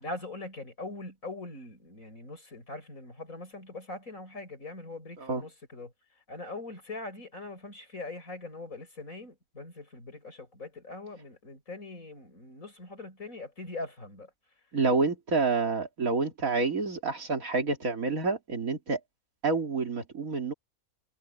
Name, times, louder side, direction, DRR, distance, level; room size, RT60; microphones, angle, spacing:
voice 1, 0.0-14.3, left 2 dB, 65° left, 7.2 m, -42 dB
voice 2, 14.7-19.0 19.4-20.5, right 4 dB, 70° right, 2.9 m, -28 dB
omnidirectional pair, 1.5 m